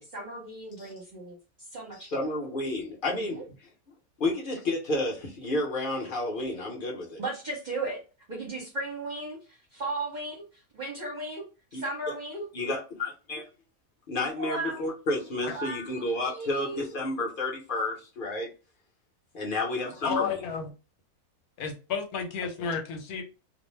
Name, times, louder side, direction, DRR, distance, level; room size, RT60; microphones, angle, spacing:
voice 1, 0.0-1.4 1.7-2.3 3.1-3.4 7.2-8.0 8.3-10.4 10.7-11.4 11.7-12.5 14.4-14.8 15.5-16.8, right 2 dB, 40° right, 0.7 m, -36 dB
voice 2, 2.0-3.4 4.2-7.2 11.7-12.1 12.5-13.4 14.1-18.5 19.3-20.4, left 2 dB, 45° left, 0.9 m, -31 dB
voice 3, 20.0-20.7 21.6-23.2, left 6 dB, 85° left, 1.2 m, -32 dB
2.6 x 2.1 x 3.1 m
omnidirectional pair, 1.5 m